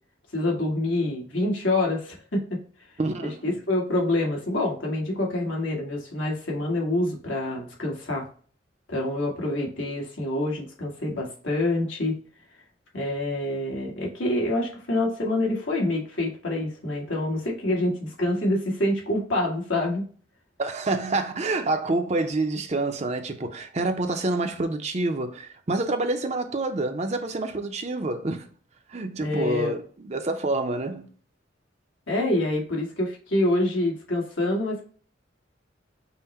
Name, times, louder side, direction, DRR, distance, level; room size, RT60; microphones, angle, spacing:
voice 1, 0.3-2.6 3.2-8.2 8.9-12.1 12.9-20.1 29.2-29.7 32.1-34.8, left 1 dB, 80° left, 1.7 m, -26 dB
voice 2, 3.0-3.4 20.6-28.5 28.9-31.1, right 2 dB, 35° right, 0.5 m, -27 dB
5.6 x 2.1 x 4.2 m
head